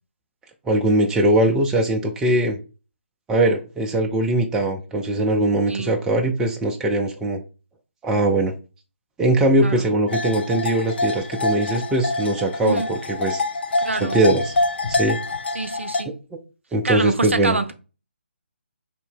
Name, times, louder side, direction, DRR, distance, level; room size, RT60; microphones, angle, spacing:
voice 1, 0.7-2.6 3.3-7.4 8.0-8.5 9.2-13.4 14.0-14.5 14.9-15.2 16.1-16.4 16.7-17.6, right 1 dB, 10° right, 0.4 m, -21 dB
sound 1, 10.1-16.0, left 2 dB, 60° left, 0.5 m, -25 dB
voice 2, 12.6-12.9 13.8-14.2 15.5-16.1 16.8-17.7, right 3 dB, 90° right, 0.5 m, -26 dB
2.9 x 2.7 x 4.4 m
figure-of-eight pair, 145°, 7 cm